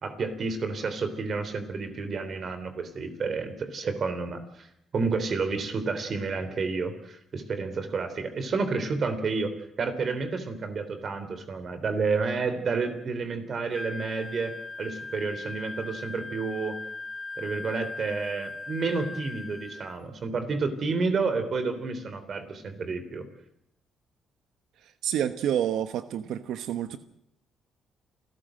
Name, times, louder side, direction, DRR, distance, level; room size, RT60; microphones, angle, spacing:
voice 1, 0.0-9.5 9.8-16.8 17.4-23.3, right 4 dB, 50° right, 3.5 m, -30 dB
Wind instrument woodwind instrument, 13.7-20.0, left 3 dB, 15° left, 1.3 m, -39 dB
voice 2, 25.0-27.0, right 10 dB, 80° right, 1.1 m, -28 dB
28.5 x 13.5 x 7.7 m
cardioid pair, 90°, 0 cm